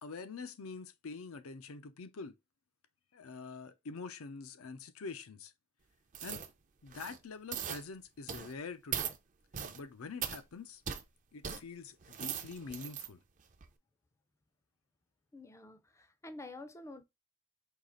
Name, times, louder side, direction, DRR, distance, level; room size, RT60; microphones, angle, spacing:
voice 1, 0.0-2.3 3.1-5.5 6.2-6.5 6.8-9.1 9.7-10.8 11.3-13.2, left 4 dB, 90° left, 0.6 m, -45 dB
sound 1, 6.1-6.5 6.9-7.2 7.5-7.8 8.3-8.5 8.9-9.2 9.5-9.8 10.2-10.4 10.9-11.0 11.4-11.6 12.0-13.1 13.5-13.7, right 8 dB, 35° right, 0.5 m, -39 dB
voice 2, 15.3-17.0, left 2 dB, 15° left, 0.4 m, -49 dB
4.7 x 2.4 x 3.7 m
head